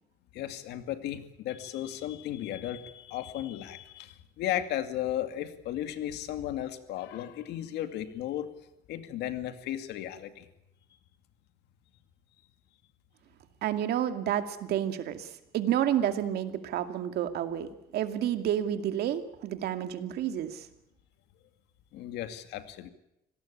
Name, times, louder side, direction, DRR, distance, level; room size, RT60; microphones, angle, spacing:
voice 1, 0.3-8.5 8.9-10.5 21.9-22.9, left 12 dB, 80° left, 9 dB, 2.4 m, -35 dB
voice 2, 13.6-20.7, right 10 dB, 70° right, 8 dB, 2.3 m, -30 dB
26.0 x 18.5 x 8.6 m, 0.85 s
cardioid pair, 110°, 17 cm